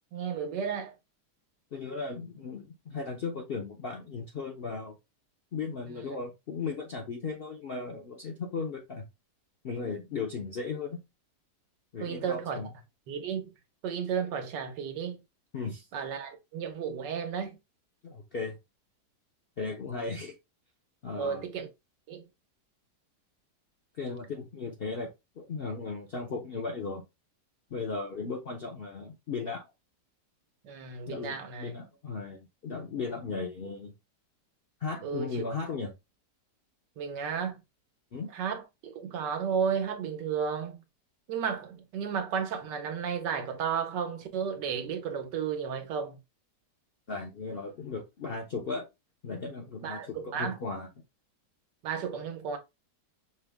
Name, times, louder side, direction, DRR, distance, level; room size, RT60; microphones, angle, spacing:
voice 1, 0.1-0.9 6.1-6.2 12.0-12.6 13.1-13.5 13.8-15.2 15.9-17.6 21.2-21.7 22.1-22.3 30.6-31.8 35.0-35.4 37.0-37.6 38.3-40.8 41.3-46.2 49.8-50.6 51.8-52.6, right 7 dB, 90° right, 1.5 m, -33 dB
voice 2, 1.7-5.0 5.5-9.1 9.6-11.0 11.9-12.7 15.5-15.9 18.0-18.6 19.6-20.3 21.0-21.5 23.9-27.0 27.7-29.7 31.1-33.9 34.8-35.9 38.1-38.3 47.1-48.9 49.2-50.9, left 4 dB, 65° left, 0.5 m, -36 dB
5.4 x 2.1 x 3.3 m
omnidirectional pair, 1.8 m